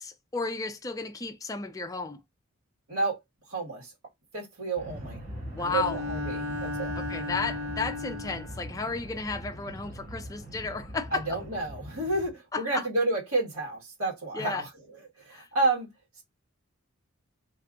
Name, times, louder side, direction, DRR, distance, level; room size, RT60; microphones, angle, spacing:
voice 1, 0.0-2.2 5.5-6.0 7.0-11.2 12.5-12.9 14.3-14.6 15.3-15.4, left 4 dB, 15° left, 0.3 m, -33 dB
voice 2, 2.9-3.2 3.5-3.9 4.3-5.2 5.6-6.9 11.1-15.9 16.2-16.3, right 2 dB, 90° right, 1.4 m, -30 dB
sound 1, 4.8-12.3, equal, 35° right, 0.9 m, -42 dB
Bowed string instrument, 5.6-8.7, left 2 dB, 70° right, 0.4 m, -35 dB
2.6 x 2.4 x 3.5 m
head